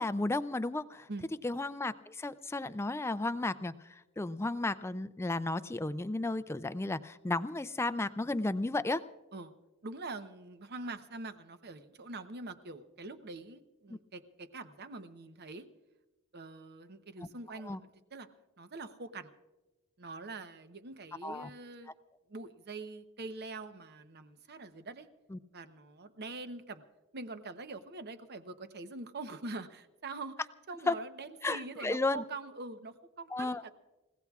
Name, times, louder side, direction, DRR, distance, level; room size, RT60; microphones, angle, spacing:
voice 1, 0.0-1.1 1.4-9.0 17.6-17.8 21.2-21.5 25.3-25.4 30.9-31.0 31.4-32.2 33.3-33.6, left 2 dB, 10° left, 13 dB, 0.4 m, -33 dB
voice 2, 9.8-15.7 16.3-17.8 18.1-18.3 18.6-19.3 20.0-21.9 22.3-25.1 25.5-26.8 27.1-30.4 30.7-33.7, right 3 dB, 50° right, 10 dB, 0.8 m, -44 dB
29.5 x 16.5 x 2.4 m, 1.1 s
head